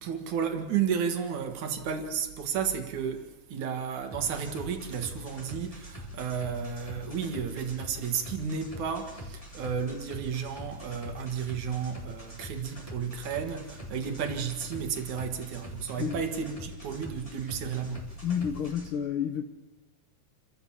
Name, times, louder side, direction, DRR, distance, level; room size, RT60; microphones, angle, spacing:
voice 1, 0.0-18.1, right 7 dB, 65° right, 3.0 m, -32 dB
sound 1, 4.1-18.9, equal, 10° left, 3.8 m, -43 dB
voice 2, 18.2-19.5, left 8 dB, 70° left, 1.2 m, -30 dB
28.5 x 13.0 x 7.3 m
omnidirectional pair, 3.8 m